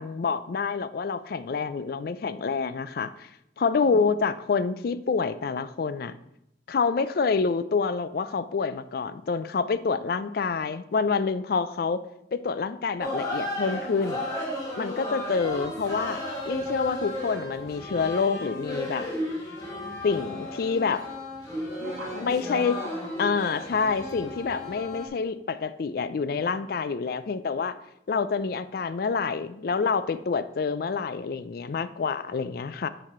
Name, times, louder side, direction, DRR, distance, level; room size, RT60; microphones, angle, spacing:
voice 1, 0.0-3.3 3.6-6.1 6.7-12.0 12.3-14.2 14.8-19.1 20.0-21.0 22.2-22.7 23.2-27.8 28.1-32.9, left 5 dB, 50° left, 14 dB, 0.3 m, -27 dB
voice 2, 3.6-4.2 21.8-23.3, equal, 70° right, -9 dB, 2.2 m, -41 dB
sound 1, 13.0-25.1, left 1 dB, 20° left, 1.7 m, -34 dB
9.0 x 4.2 x 4.3 m, 0.82 s
head